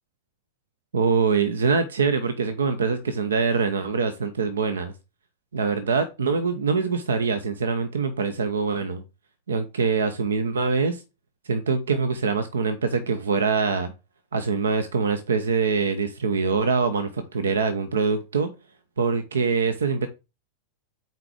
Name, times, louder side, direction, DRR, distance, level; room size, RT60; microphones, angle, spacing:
voice 1, 0.9-4.9 5.5-9.0 9.5-11.0 11.5-13.9 14.3-18.5 19.0-20.1, right 5 dB, 70° right, 0.7 m, -24 dB
5.8 x 4.4 x 5.0 m
figure-of-eight pair, 90°, 0 cm